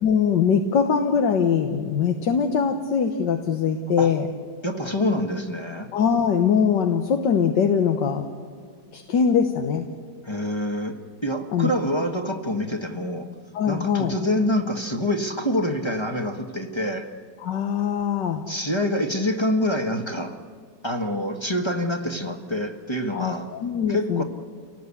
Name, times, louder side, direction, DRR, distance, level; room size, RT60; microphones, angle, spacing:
voice 1, 0.0-4.3 5.9-8.3 8.9-9.9 11.5-11.7 13.5-14.1 17.4-18.5 23.1-24.2, left 7 dB, 75° left, 5 dB, 1.8 m, -22 dB
voice 2, 4.6-5.9 10.2-13.3 13.7-17.1 18.5-20.4 20.8-23.5 23.9-24.2, left 1 dB, 15° left, 4 dB, 1.3 m, -26 dB
28.5 x 18.5 x 8.5 m, 2.1 s
omnidirectional pair, 1.9 m